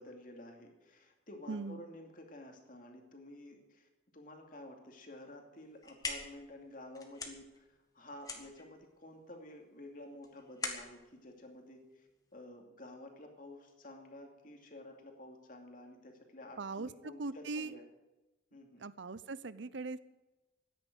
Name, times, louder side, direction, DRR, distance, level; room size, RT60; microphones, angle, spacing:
voice 1, 0.0-3.9 4.1-17.8 18.5-18.9, left 1 dB, 45° left, 2 dB, 2.6 m, -51 dB
voice 2, 1.5-1.8 16.6-17.8 18.8-20.0, right 3 dB, 75° right, 16 dB, 0.7 m, -40 dB
sound 1, 5.6-12.4, left 3 dB, 20° left, 1.7 m, -45 dB
14.0 x 10.0 x 7.9 m, 1.1 s
head